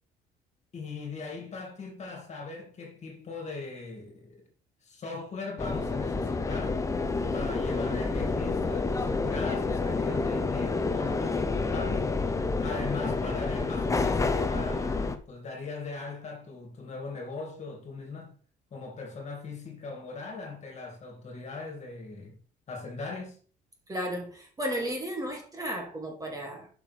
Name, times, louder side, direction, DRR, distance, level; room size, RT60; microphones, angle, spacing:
voice 1, 0.7-4.4 4.8-6.8 7.3-12.1 12.6-18.3 18.7-22.4 22.7-23.4, left 4 dB, 40° left, 2.4 m, -39 dB
sound 1, 5.6-15.2, left 3 dB, 20° left, 0.8 m, -29 dB
voice 2, 23.9-26.7, equal, 20° right, 2.5 m, -34 dB
8.8 x 6.2 x 3.4 m
cardioid pair, 110°, 17 cm